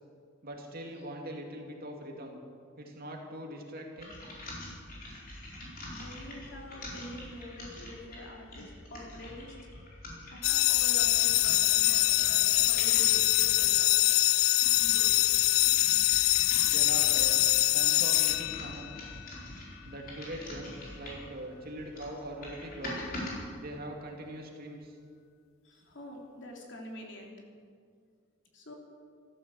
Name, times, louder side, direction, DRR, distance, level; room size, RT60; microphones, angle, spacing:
voice 1, 0.4-2.4 2.8-4.1 16.6-17.4 17.7-19.1 19.8-23.1 23.6-24.9, right 1 dB, 50° right, 1 dB, 2.5 m, -42 dB
sound 1, 4.0-13.8 14.4-21.3 21.8-23.4, left 1 dB, 50° left, 4.5 m, -44 dB
voice 2, 5.9-9.5 10.3-14.1 14.8-15.2 25.6-27.3 28.5-28.7, left 1 dB, 65° left, 0 dB, 3.1 m, -46 dB
sound 2, 10.4-19.1, left 18 dB, 85° left, 0.3 m, -24 dB
14.5 x 13.0 x 7.6 m, 2.1 s
head